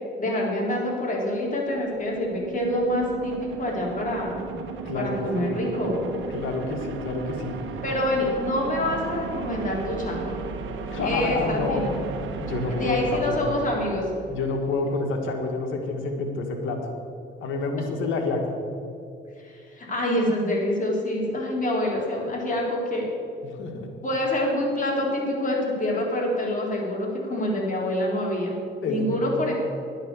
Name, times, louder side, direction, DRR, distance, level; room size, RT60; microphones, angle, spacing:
voice 1, 0.2-4.4 4.9-6.1 7.8-10.4 11.0-12.0 12.7-14.0 19.4-23.1 24.0-28.5 28.9-29.5, left 1 dB, 40° left, -2 dB, 3.7 m, -26 dB
sound 1, 1.3-14.5, right 5 dB, 75° right, 1.2 m, -35 dB
voice 2, 4.5-5.5 6.3-7.5 10.9-11.8 12.4-13.5 14.3-16.8 17.4-18.6 23.6-23.9 28.8-29.5, left 3 dB, 80° left, 3 dB, 1.8 m, -29 dB
11.0 x 9.0 x 6.9 m, 2.5 s
cardioid pair, 90°, 20 cm